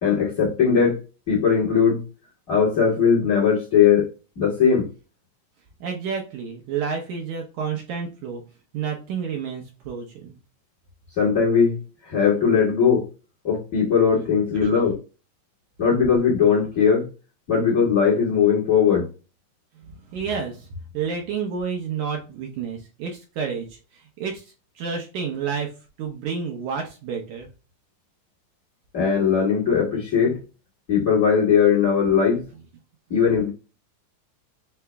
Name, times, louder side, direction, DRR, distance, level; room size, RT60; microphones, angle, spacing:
voice 1, 0.0-1.0 1.3-2.0 2.5-4.1 4.3-4.9 11.2-11.8 12.1-13.1 13.4-15.0 15.8-17.1 17.5-19.1 28.9-30.4 30.9-32.4 33.1-33.5, left 6 dB, 45° left, 1.1 m, -19 dB
voice 2, 5.8-8.4 8.7-10.4 14.6-14.8 19.7-20.7 20.9-27.5, right 6 dB, 75° right, 1.8 m, -30 dB
5.7 x 2.0 x 3.3 m
omnidirectional pair, 4.2 m